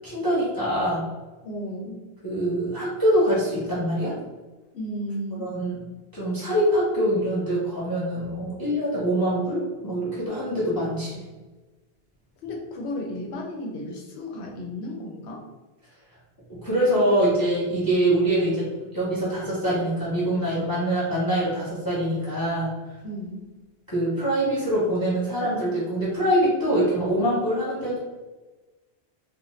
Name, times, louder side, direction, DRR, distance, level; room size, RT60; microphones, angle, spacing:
voice 1, 0.0-1.1 2.2-4.1 5.4-5.8 6.1-11.3 16.6-18.7 18.9-22.7 23.9-28.0, right 1 dB, 25° left, -8 dB, 0.8 m, -24 dB
voice 2, 1.4-2.0 4.7-5.5 12.4-15.5 23.0-23.4, left 1 dB, 90° left, 0 dB, 0.9 m, -34 dB
2.5 x 2.2 x 3.1 m, 1.2 s
omnidirectional pair, 1.1 m